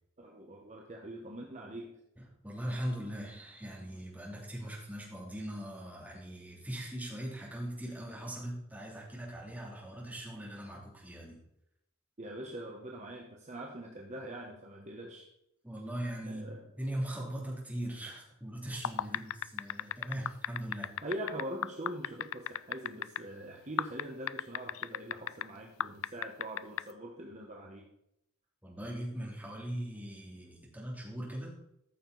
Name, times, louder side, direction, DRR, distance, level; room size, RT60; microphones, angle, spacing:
voice 1, 0.2-2.0 12.2-15.3 16.3-16.7 19.1-19.4 21.0-27.9, right 1 dB, 35° right, 0 dB, 1.2 m, -43 dB
voice 2, 2.2-11.4 15.6-16.5 16.8-20.9 28.6-31.5, right 1 dB, 10° right, -4 dB, 3.0 m, -40 dB
sound 1, 18.7-23.2 23.8-25.5 25.8-26.8, left 11 dB, 75° left, 0.3 m, -34 dB
13.5 x 6.8 x 4.1 m, 0.78 s
head